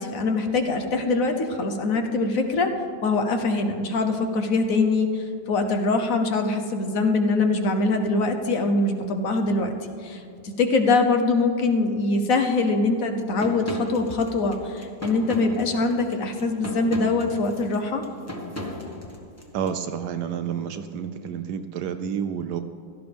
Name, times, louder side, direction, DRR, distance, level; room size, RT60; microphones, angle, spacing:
voice 1, 0.0-2.7 3.0-9.7 10.0-18.0, left 3 dB, 55° left, 5 dB, 1.1 m, -23 dB
sound 1, 13.4-19.7, left 1 dB, 10° left, 1.2 m, -36 dB
voice 2, 19.5-22.6, right 8 dB, 75° right, 9 dB, 1.0 m, -29 dB
16.0 x 13.5 x 3.5 m, 2.6 s
omnidirectional pair, 2.1 m